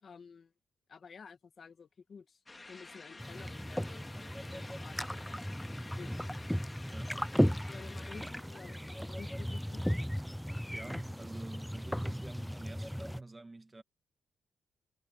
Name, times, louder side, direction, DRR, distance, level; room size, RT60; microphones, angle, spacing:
voice 1, 0.0-0.5 0.9-2.4 2.7-5.4 5.7-6.3 7.7-9.8, left 5 dB, 45° left, 2.0 m, -52 dB
sound 1, 2.5-8.2, left 3 dB, 20° left, 1.9 m, -51 dB
sound 2, 3.2-13.2, equal, ahead, 0.4 m, -36 dB
voice 2, 6.9-7.4 10.7-13.8, right 2 dB, 20° right, 1.5 m, -47 dB
cardioid pair, 120°, 0 cm